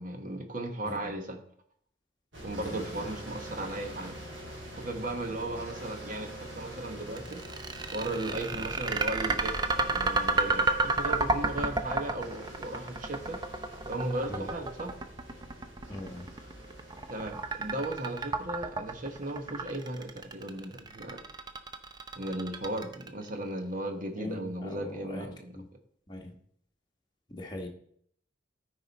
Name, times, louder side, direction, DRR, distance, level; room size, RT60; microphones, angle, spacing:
voice 1, 0.0-1.4 2.4-4.2 4.8-7.7 7.9-13.4 13.9-15.0 17.1-21.2 22.1-25.5, right 1 dB, 45° right, 5 dB, 1.2 m, -36 dB
voice 2, 0.8-1.1 2.6-3.0 8.6-8.7 14.3-14.5 15.9-16.3 24.2-25.3 25.5-25.7 26.1-26.3 27.3-27.7, left 1 dB, 20° left, 0 dB, 1.2 m, -41 dB
sound 1, 2.3-21.0, right 1 dB, 75° right, 3.2 m, -46 dB
sound 2, 7.2-23.3, right 3 dB, 20° right, 0.5 m, -31 dB
13.0 x 5.0 x 4.1 m, 0.65 s
head